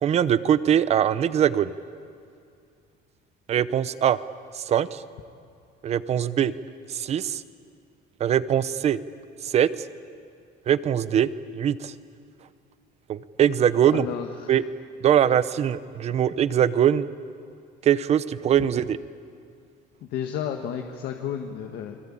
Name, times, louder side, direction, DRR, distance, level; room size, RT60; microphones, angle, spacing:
voice 1, 0.0-1.7 3.5-4.2 4.5-5.0 5.8-6.5 6.9-7.4 8.2-9.0 9.4-9.7 10.7-11.9 13.1-14.1 14.5-14.6 15.0-17.1 17.8-19.0, right 9 dB, 40° right, 15 dB, 0.8 m, -22 dB
voice 2, 13.8-14.6 16.1-16.2 20.0-22.0, left 9 dB, 70° left, 4 dB, 1.7 m, -32 dB
30.0 x 22.5 x 8.8 m, 2.4 s
cardioid pair, 165°, 18 cm